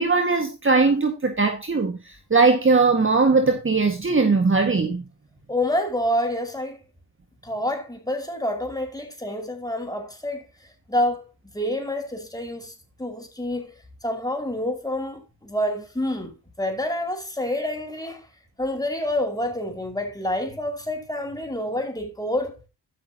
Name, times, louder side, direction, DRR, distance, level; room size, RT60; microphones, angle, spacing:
voice 1, 0.0-5.0, right 4 dB, 30° right, 1.9 m, -20 dB
voice 2, 5.5-6.8 7.4-10.5 10.9-11.3 11.5-12.7 13.0-13.7 14.0-18.3 18.6-22.5, left 1 dB, 10° left, 5.2 m, -27 dB
13.5 x 7.4 x 2.9 m
cardioid pair, 70°, 44 cm